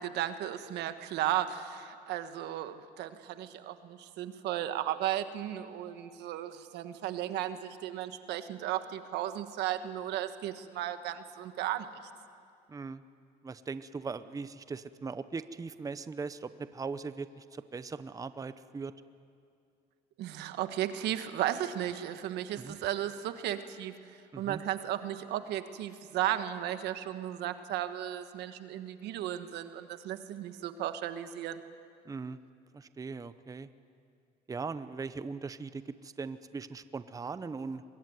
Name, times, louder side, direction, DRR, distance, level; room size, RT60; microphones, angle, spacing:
voice 1, 0.0-11.9 20.2-31.6, right 12 dB, 80° right, 10 dB, 1.4 m, -35 dB
voice 2, 12.7-13.0 13.4-18.9 22.6-22.8 24.3-24.6 32.1-32.4 32.7-33.7 34.5-37.8, right 4 dB, 20° right, 13 dB, 0.7 m, -39 dB
24.0 x 22.0 x 9.5 m, 2.4 s
cardioid pair, 110°, 17 cm